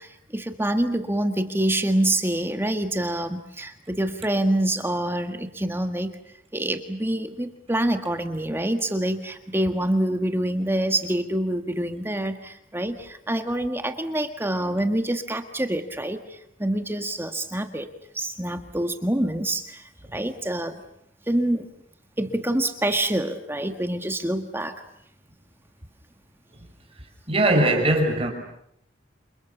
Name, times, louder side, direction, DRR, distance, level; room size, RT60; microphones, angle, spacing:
voice 1, 0.0-6.1 6.5-17.9 18.1-20.8 21.3-21.7 22.2-24.8, right 1 dB, 10° right, 1.7 m, -26 dB
voice 2, 27.3-28.3, right 1 dB, 30° right, 5.8 m, -20 dB
29.0 x 28.5 x 7.3 m
head